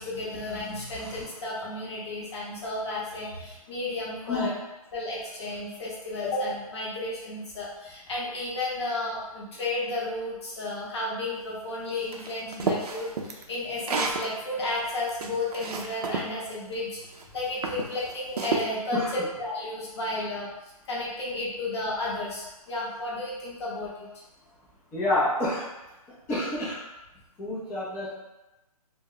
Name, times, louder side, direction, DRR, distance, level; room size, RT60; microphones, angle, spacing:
voice 1, 0.0-4.5 4.9-17.0 17.3-20.5 20.9-24.1, left 2 dB, 45° left, -5 dB, 0.7 m, -32 dB
sound 1, 12.1-14.2 14.8-16.3 17.0-17.2 17.6-18.7, right 4 dB, 80° right, 0.5 m, -30 dB
voice 2, 24.9-25.6 26.3-26.8 27.4-28.1, left 1 dB, 10° left, -9 dB, 0.5 m, -28 dB
2.1 x 2.1 x 3.6 m, 1.0 s
hypercardioid pair, 155°, 20 cm